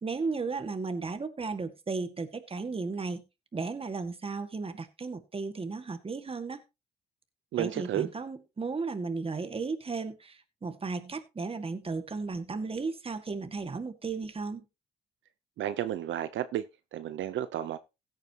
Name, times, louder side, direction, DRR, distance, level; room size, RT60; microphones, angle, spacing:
voice 1, 0.0-3.2 3.5-6.6 7.6-14.6, right 4 dB, 30° right, 2.0 m, -35 dB
voice 2, 7.5-8.1 15.6-16.7 16.9-17.8, right 11 dB, 75° right, 0.8 m, -32 dB
16.0 x 8.9 x 3.0 m
cardioid pair, 90°, 20 cm